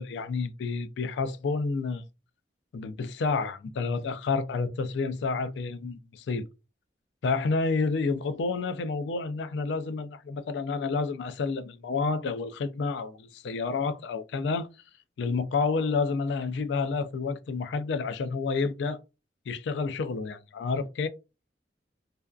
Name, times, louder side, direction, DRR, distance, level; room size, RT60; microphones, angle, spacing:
voice 1, 0.0-2.0 2.7-6.5 7.2-14.7 15.2-19.0 19.5-21.1, left 4 dB, 75° left, 0.3 m, -29 dB
2.4 x 2.2 x 2.3 m
head